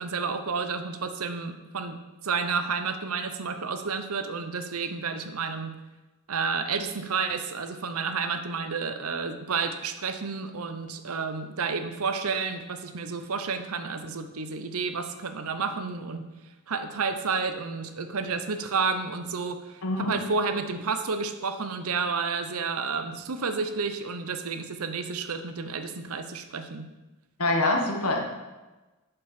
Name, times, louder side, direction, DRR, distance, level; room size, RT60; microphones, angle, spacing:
voice 1, 0.0-2.0 2.2-5.8 6.3-16.3 16.7-26.9, right 5 dB, 80° right, 8 dB, 0.8 m, -30 dB
voice 2, 19.8-20.1 27.4-28.2, left 2 dB, 80° left, 1 dB, 1.6 m, -25 dB
8.6 x 6.9 x 4.4 m, 1.1 s
head